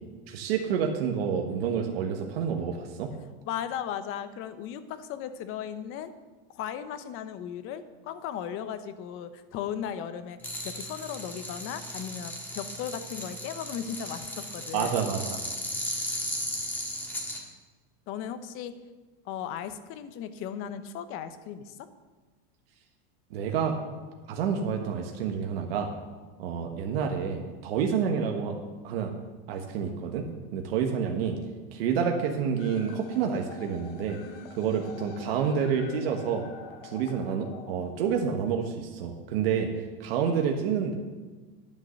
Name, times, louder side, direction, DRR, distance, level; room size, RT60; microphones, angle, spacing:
voice 1, 0.3-3.1 14.7-15.5 23.3-23.8 24.3-25.9 26.4-28.5 28.8-29.1 29.5-30.3 30.5-31.4 31.7-34.2 34.5-36.4 36.8-40.9, right 7 dB, 85° right, 3 dB, 1.2 m, -28 dB
voice 2, 3.4-6.1 6.5-10.4 10.6-15.1 18.1-18.8 19.2-21.8, left 9 dB, 45° left, 11 dB, 0.9 m, -36 dB
sound 1, 10.4-17.4, left 1 dB, 5° left, 1.6 m, -36 dB
sound 2, 32.6-38.6, left 6 dB, 70° left, 1.4 m, -46 dB
11.0 x 6.6 x 6.4 m, 1.3 s
supercardioid pair, 140°, 29 cm